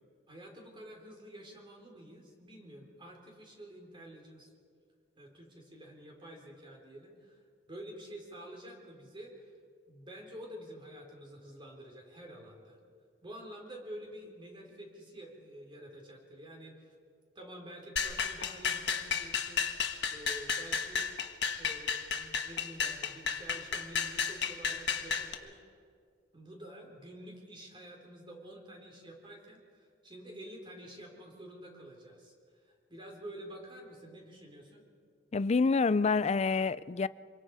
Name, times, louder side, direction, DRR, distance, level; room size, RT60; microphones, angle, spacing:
voice 1, 0.3-4.5 5.2-7.4 7.7-9.5 9.9-12.8 13.2-16.9 17.3-19.7 20.1-21.1 21.5-25.6 26.3-32.3 32.7-34.8, equal, 25° right, 3.9 m, -49 dB
sound 1, 18.0-25.3, left 6 dB, 65° left, 1.3 m, -33 dB
voice 2, 35.3-37.1, left 4 dB, 35° left, 0.4 m, -27 dB
26.5 x 23.0 x 4.9 m
head